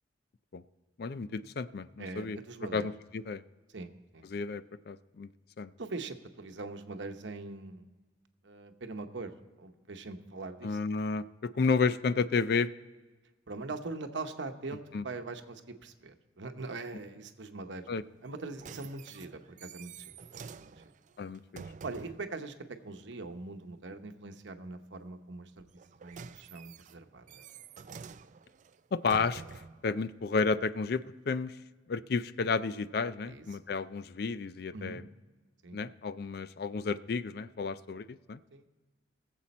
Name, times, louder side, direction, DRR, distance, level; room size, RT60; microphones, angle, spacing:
voice 1, 1.0-2.4 2.7-3.4 4.3-5.3 5.6-5.7 10.6-12.7 14.9-15.0 17.9-18.0 21.2-21.6 28.9-29.4 29.8-31.6 31.9-35.0 35.7-38.4, left 4 dB, 55° left, 15 dB, 0.4 m, -32 dB
voice 2, 2.0-2.9 3.7-4.3 5.8-7.9 8.4-10.8 13.5-17.9 18.2-20.1 20.6-20.7 21.8-22.5 22.8-27.4 33.2-33.4 34.7-35.0 35.6-35.8 38.5-38.6, right 3 dB, 75° right, 7 dB, 0.9 m, -42 dB
sound 1, 18.2-22.3 25.7-29.9 30.6-30.7, right 5 dB, 40° right, 0.3 m, -48 dB
19.5 x 7.6 x 4.2 m, 1.3 s
head